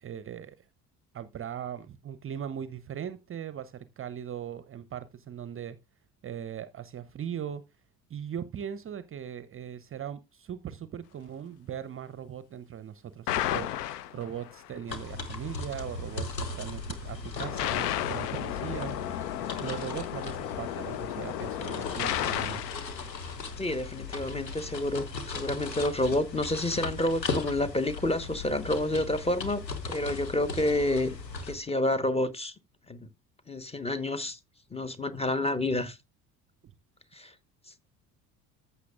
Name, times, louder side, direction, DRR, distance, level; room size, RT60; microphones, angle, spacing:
voice 1, 0.0-0.6 1.1-5.8 6.2-7.6 8.1-19.0 19.6-22.7 36.6-36.7, right 9 dB, 25° right, 0.7 m, -39 dB
sound 1, 13.3-14.7 17.4-23.9, left 12 dB, 70° left, 0.8 m, -33 dB
sound 2, 14.9-31.6, left 3 dB, 85° left, 1.3 m, -38 dB
voice 2, 23.6-31.2 31.4-32.5 32.9-33.0 33.5-34.4 34.7-36.0 37.1-37.3, left 1 dB, 10° left, 1.1 m, -29 dB
14.5 x 7.1 x 2.4 m
figure-of-eight pair, 60°, 49 cm